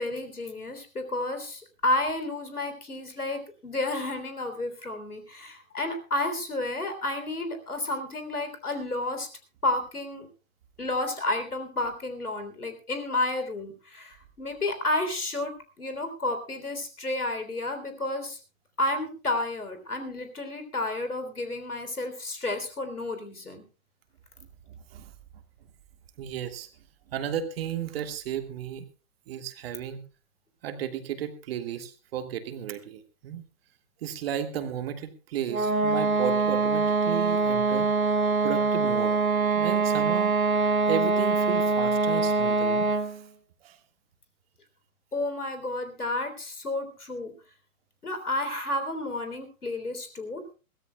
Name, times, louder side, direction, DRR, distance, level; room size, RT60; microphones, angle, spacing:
voice 1, 0.0-9.3 9.6-10.3 10.8-18.4 18.8-23.7 45.1-47.3 48.0-50.4, left 2 dB, 85° left, 8 dB, 3.5 m, -31 dB
voice 2, 24.7-25.1 26.2-26.7 27.1-28.8 29.3-30.0 30.6-33.4 34.0-37.9 38.4-39.2 39.5-40.3 40.9-43.2 43.6-43.8, right 9 dB, 40° right, 8 dB, 1.8 m, -34 dB
sound 1, 35.5-43.2, right 3 dB, 70° right, 2.3 m, -24 dB
22.0 x 16.5 x 2.3 m, 0.33 s
figure-of-eight pair, 125°, 44 cm